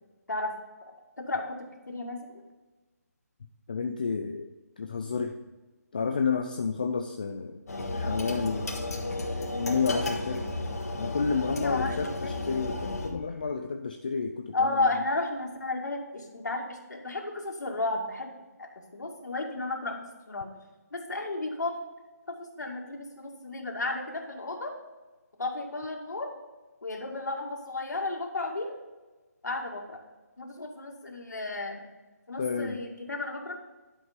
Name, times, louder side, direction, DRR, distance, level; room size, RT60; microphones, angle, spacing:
voice 1, 1.2-2.4 11.4-12.3 14.5-18.3 18.6-20.5 20.9-21.7 22.3-24.7 25.4-26.3 26.8-28.8 29.4-30.0 30.4-31.8 32.3-33.6, left 2 dB, 85° left, 1 dB, 2.3 m, -33 dB
voice 2, 3.7-5.4 5.9-7.6 7.9-8.7 9.5-10.6 11.0-15.0 32.4-32.8, left 5 dB, 30° left, 5 dB, 0.4 m, -31 dB
sound 1, 7.7-13.1, left 2 dB, 65° left, 2.1 m, -33 dB
11.5 x 5.2 x 5.2 m, 1.2 s
hypercardioid pair, 175°, 9 cm